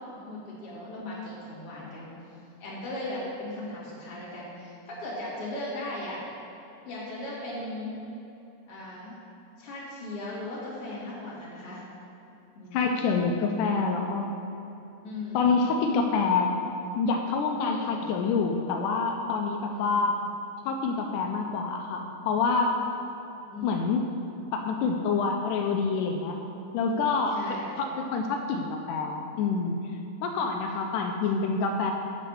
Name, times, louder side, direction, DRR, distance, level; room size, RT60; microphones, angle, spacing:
voice 1, 0.0-2.2 2.6-6.2 6.8-7.9 8.7-9.1 9.6-11.8 12.5-13.2 15.0-15.5 17.6-18.1 19.7-20.1 23.5-23.8 27.3-27.7, left 1 dB, 50° left, -7 dB, 2.9 m, -38 dB
voice 2, 12.7-14.3 15.3-16.6 17.0-20.1 20.7-22.7 23.6-24.0 24.5-26.4 26.7-27.4 27.8-29.8 30.2-31.9, left 4 dB, 90° left, 3 dB, 2.2 m, -27 dB
7.3 x 6.6 x 7.0 m, 2.9 s
omnidirectional pair, 3.6 m